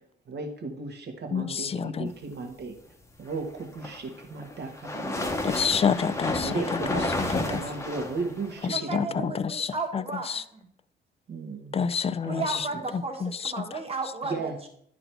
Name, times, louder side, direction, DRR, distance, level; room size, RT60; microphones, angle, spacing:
voice 1, 0.3-2.7 3.2-5.8 6.4-9.3 11.3-11.7 12.2-12.4 14.2-14.6, right 3 dB, 55° right, 4 dB, 1.5 m, -35 dB
voice 2, 1.3-2.1 5.4-7.0 7.3-7.4 8.6-10.0 10.3-10.4 11.7-12.6 13.2-13.6, left 6 dB, 30° left, 16 dB, 0.4 m, -28 dB
sound 1, 3.6-8.7, left 2 dB, 15° left, 1.0 m, -31 dB
voice 3, 8.7-10.7 12.3-14.4, right 3 dB, 30° right, 3 dB, 1.7 m, -34 dB
10.5 x 3.9 x 4.5 m, 0.66 s
cardioid pair, 90°, 20 cm